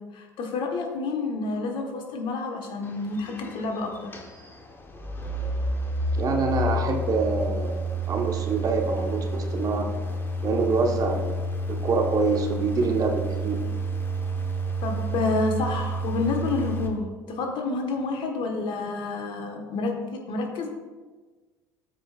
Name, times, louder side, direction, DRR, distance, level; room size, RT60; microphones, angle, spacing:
voice 1, 0.1-4.1 14.8-20.7, left 3 dB, 55° left, 2 dB, 1.5 m, -29 dB
sound 1, 2.8-16.9, right 1 dB, 20° left, 1.2 m, -30 dB
voice 2, 6.1-9.9 10.4-11.3 11.7-13.6, right 4 dB, 35° right, 2 dB, 1.2 m, -26 dB
13.0 x 5.1 x 2.5 m, 1.3 s
hypercardioid pair, 65°, 10 cm